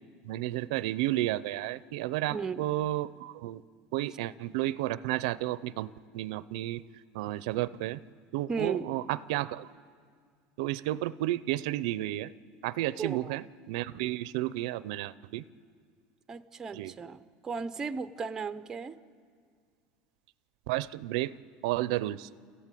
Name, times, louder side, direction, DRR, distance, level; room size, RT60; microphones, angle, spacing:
voice 1, 0.2-3.6 3.9-6.8 7.1-8.0 8.3-9.7 10.6-12.3 12.6-15.4 16.7-16.9 20.7-21.3 21.6-22.3, right 16 dB, 75° right, 18 dB, 0.5 m, -32 dB
voice 2, 2.3-2.7 8.5-8.9 13.0-13.4 16.3-19.0, right 5 dB, 15° right, 12 dB, 0.6 m, -35 dB
30.0 x 14.5 x 9.1 m, 2.1 s
cardioid pair, 170°, 4 cm